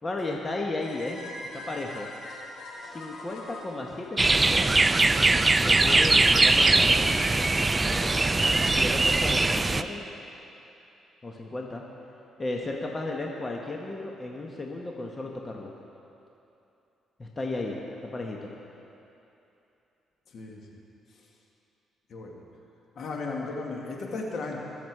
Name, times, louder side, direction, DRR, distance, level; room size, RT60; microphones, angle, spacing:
voice 1, 0.0-1.3 1.5-2.1 2.8-4.8 5.6-7.2 7.8-10.0 11.2-11.8 12.4-15.7 17.2-18.5, left 2 dB, 25° left, 0 dB, 1.2 m, -34 dB
sound 1, 0.8-4.9, left 1 dB, 80° left, 3.2 m, -42 dB
sound 2, 4.2-9.8, right 2 dB, 20° right, 0.4 m, -21 dB
voice 2, 20.3-20.7 21.1-21.2 22.1-22.3 23.0-24.6, left 3 dB, 60° left, -1 dB, 2.0 m, -35 dB
21.5 x 7.2 x 4.8 m, 2.8 s
cardioid pair, 90°, 0 cm